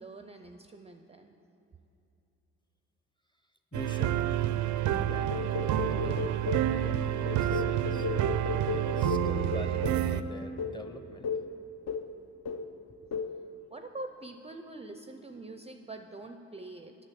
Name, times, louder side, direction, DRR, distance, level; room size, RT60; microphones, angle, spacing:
voice 1, 0.0-1.4 13.0-13.1 13.7-17.0, right 2 dB, 20° right, 7 dB, 0.4 m, -44 dB
voice 2, 3.7-4.3 4.9-5.4 5.7-8.1 8.7-11.3, left 2 dB, 15° left, 7 dB, 0.7 m, -44 dB
sound 1, 3.7-10.2, right 11 dB, 75° right, 0.5 m, -29 dB
sound 2, 5.3-6.7 7.3-10.1 10.6-10.8 11.2-11.5 11.9-12.2 12.5-12.8 13.1-13.4, left 5 dB, 55° left, 0.7 m, -35 dB
8.9 x 6.2 x 8.4 m, 2.8 s
cardioid pair, 90°, 30 cm